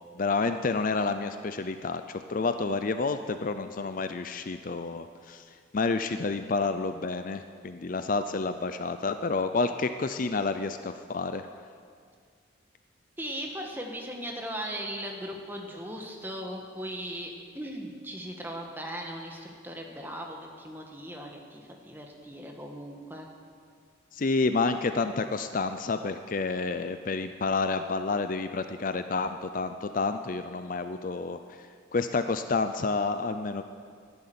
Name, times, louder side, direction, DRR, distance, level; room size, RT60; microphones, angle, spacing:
voice 1, 0.2-5.4 5.7-11.5 24.1-31.6 31.9-33.6, left 3 dB, 40° left, 9 dB, 0.5 m, -29 dB
voice 2, 13.2-23.3, equal, 10° right, 1 dB, 1.5 m, -38 dB
12.5 x 10.5 x 9.4 m, 2.1 s
head